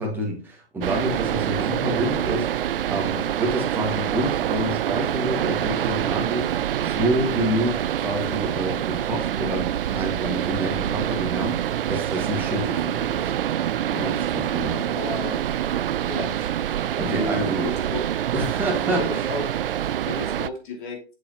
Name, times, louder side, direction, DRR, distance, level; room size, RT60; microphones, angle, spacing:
voice 1, 0.0-13.3 13.9-15.0 16.4-17.7 18.3-19.3, right 1 dB, 5° right, 1.9 m, -28 dB
sound 1, 0.8-20.5, right 11 dB, 55° right, 0.4 m, -26 dB
voice 2, 14.9-15.4 16.1-16.7 17.0-18.0 19.0-19.5 20.1-21.0, left 2 dB, 45° left, 2.9 m, -33 dB
8.0 x 6.4 x 2.9 m
hypercardioid pair, 140°, 34 cm